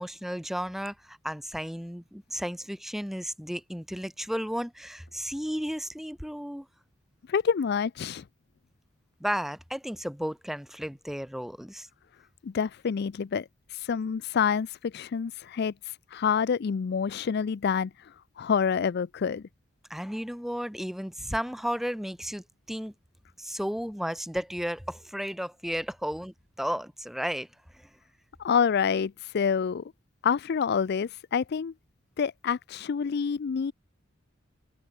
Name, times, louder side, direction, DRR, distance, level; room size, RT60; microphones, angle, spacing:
voice 1, 0.0-6.7 9.2-11.9 19.9-22.9 23.4-27.5 27.7-27.9, equal, ahead, 1.6 m, -33 dB
voice 2, 7.3-8.2 12.4-19.4 28.4-29.9 30.2-31.7 32.2-33.7, left 6 dB, 55° left, 0.4 m, -27 dB
head